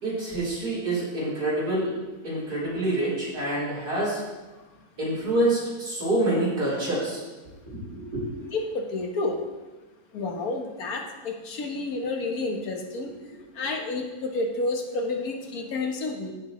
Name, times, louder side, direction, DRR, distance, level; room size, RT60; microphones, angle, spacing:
voice 1, 0.0-1.9 2.2-4.2 5.0-7.2 7.7-8.2, right 1 dB, 70° right, -8 dB, 4.5 m, -27 dB
voice 2, 8.5-9.4 10.1-13.1 13.5-16.3, left 3 dB, 65° left, 2 dB, 1.6 m, -30 dB
15.5 x 6.7 x 3.1 m, 1.2 s
omnidirectional pair, 1.8 m